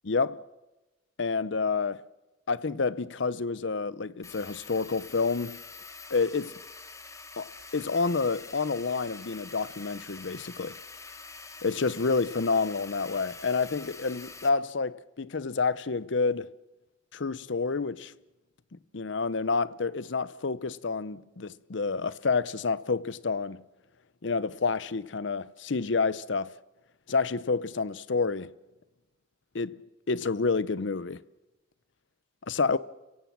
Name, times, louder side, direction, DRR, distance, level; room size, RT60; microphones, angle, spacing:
voice 1, 0.1-0.4 1.2-2.0 2.5-5.6 6.1-6.5 7.4-10.7 11.6-16.5 17.1-18.1 18.9-23.6 24.2-26.5 27.1-28.5 29.5-29.8 30.1-31.2 32.5-32.8, left 4 dB, 65° left, 0.7 m, -29 dB
sound 1, 4.2-14.5, left 4 dB, 15° left, 1.5 m, -46 dB
29.5 x 16.5 x 7.3 m
head